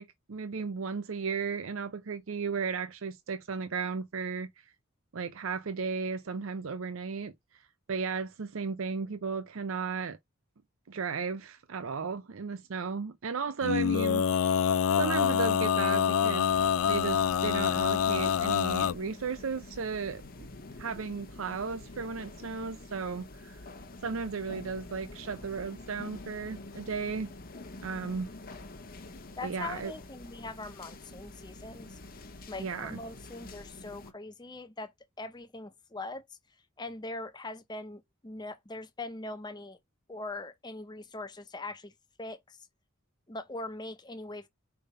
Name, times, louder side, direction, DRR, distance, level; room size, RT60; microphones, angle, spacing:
voice 1, 0.0-4.5 5.1-7.3 7.9-10.2 10.9-14.5 15.0-16.5 16.9-20.5 20.8-23.6 24.0-27.3 27.8-28.3 29.4-29.9 32.6-33.0, right 5 dB, 70° right, 0.6 m, -35 dB
Male singing, 13.6-18.9, left 8 dB, 75° left, 0.4 m, -26 dB
sound 1, 16.5-34.1, left 2 dB, 45° left, 1.0 m, -47 dB
voice 2, 29.4-32.0 32.5-34.9 35.2-36.2 36.8-39.8 40.1-41.9 42.2-42.6 43.3-44.5, left 2 dB, 20° left, 0.8 m, -41 dB
5.0 x 3.6 x 5.4 m
head